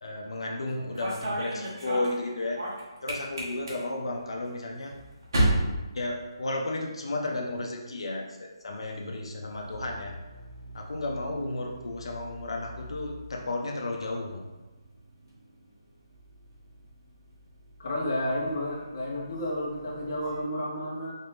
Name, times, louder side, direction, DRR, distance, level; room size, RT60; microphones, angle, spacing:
voice 1, 0.0-2.6 3.0-4.9 5.9-10.1 10.7-14.4, left 2 dB, 80° left, 0 dB, 0.6 m, -33 dB
sound 1, 0.7-6.9 7.1-7.7 8.8-20.4, right 1 dB, 45° right, 1.1 m, -36 dB
voice 2, 17.8-21.2, left 1 dB, 35° left, -4 dB, 0.9 m, -31 dB
4.3 x 2.6 x 3.4 m, 1.2 s
hypercardioid pair, 175°, 3 cm